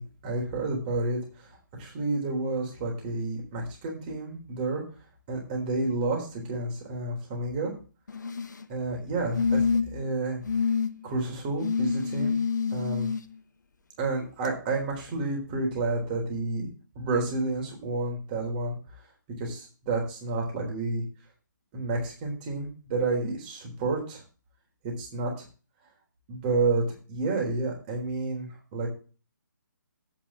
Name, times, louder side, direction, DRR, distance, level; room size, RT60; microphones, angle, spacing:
voice 1, 0.0-1.5 1.8-4.8 5.3-7.7 8.7-9.6 9.9-10.4 11.0-12.3 12.7-13.1 14.0-16.7 17.0-18.7 19.4-21.0 21.7-24.2 24.8-25.3 26.3-26.8 27.1-28.9, right 3 dB, 25° right, 0 dB, 3.8 m, -30 dB
sound 1, 8.1-8.6 9.3-10.0 10.5-10.9 11.6-13.2 14.4-14.5, left 5 dB, 65° left, 1.1 m, -27 dB
8.9 x 6.0 x 7.3 m, 0.36 s
figure-of-eight pair, 140°, 11 cm